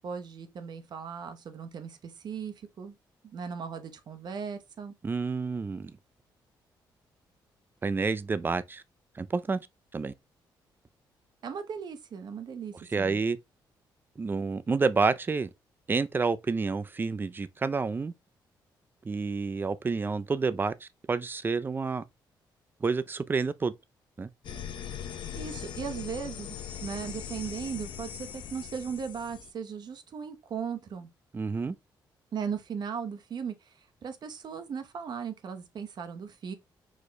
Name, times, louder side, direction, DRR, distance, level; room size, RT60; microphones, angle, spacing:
voice 1, 0.0-2.9 3.2-4.9 11.4-13.2 25.3-31.1 32.3-36.5, right 6 dB, 60° right, 0.8 m, -37 dB
voice 2, 5.0-5.9 7.8-8.8 9.2-9.6 9.9-10.1 12.9-13.4 14.2-15.5 15.9-18.1 19.0-22.0 22.8-23.7 24.2-24.3 31.3-31.7, right 4 dB, 25° right, 0.4 m, -29 dB
sound 1, 24.4-29.5, left 9 dB, 70° left, 0.7 m, -40 dB
4.9 x 2.2 x 4.0 m
cardioid pair, 85°, 8 cm